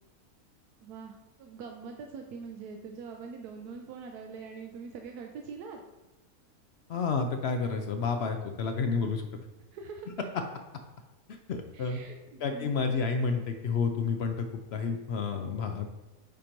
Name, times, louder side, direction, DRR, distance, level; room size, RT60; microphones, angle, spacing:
voice 1, 0.8-5.8 9.6-10.1 11.7-13.1, right 5 dB, 80° right, 3 dB, 1.1 m, -43 dB
voice 2, 6.9-9.2 11.5-12.0 12.4-14.5 14.7-15.9, left 5 dB, 65° left, 6 dB, 0.6 m, -30 dB
8.6 x 3.0 x 5.0 m, 1.1 s
omnidirectional pair, 1.6 m